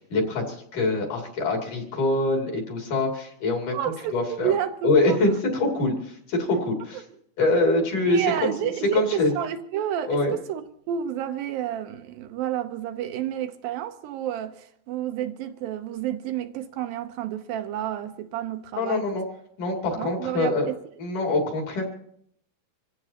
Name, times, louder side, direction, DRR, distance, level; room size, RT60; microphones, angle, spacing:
voice 1, 0.0-3.8 4.1-4.5 4.8-7.0 7.4-8.5 8.9-9.3 10.1-10.3 18.8-19.3 19.6-20.7 21.0-21.9, left 2 dB, 60° left, 4.1 m, -24 dB
voice 2, 3.7-5.2 6.9-7.0 8.0-19.1 20.0-20.8, right 10 dB, 80° right, 2.4 m, -30 dB
26.5 x 15.5 x 2.9 m
omnidirectional pair, 4.3 m